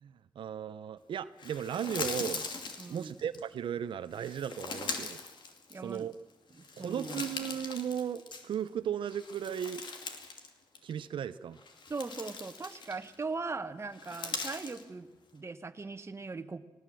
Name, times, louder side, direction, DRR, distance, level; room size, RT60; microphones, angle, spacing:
voice 1, 0.0-2.5 2.9-5.2 5.8-6.1 6.8-9.8 10.8-11.6, right 9 dB, 85° right, 11 dB, 0.6 m, -36 dB
sound 1, 1.4-3.4 4.1-6.1 6.5-8.7 9.0-10.5 10.8-10.9 11.5-13.2 13.9-14.8, left 4 dB, 65° left, 2.7 m, -41 dB
voice 2, 2.8-3.1 5.7-6.1 6.5-7.2 11.9-16.6, right 4 dB, 30° right, 9 dB, 1.3 m, -40 dB
19.5 x 18.0 x 7.6 m, 1.1 s
cardioid pair, 90°, 8 cm